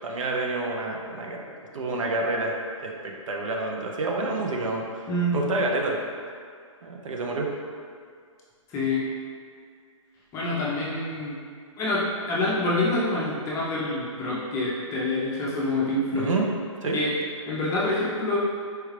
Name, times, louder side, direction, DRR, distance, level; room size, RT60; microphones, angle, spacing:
voice 1, 0.0-1.4 1.7-2.5 2.8-4.9 5.3-6.0 6.8-7.5 16.1-16.5 16.8-17.0, right 2 dB, 70° right, 0 dB, 0.7 m, -28 dB
voice 2, 5.1-5.4 8.7-9.0 10.3-11.3 11.8-16.3 16.9-17.1 17.5-18.4, left 2 dB, 15° left, -7 dB, 0.5 m, -26 dB
4.6 x 2.3 x 3.2 m, 2.2 s
hypercardioid pair, 140°, 17 cm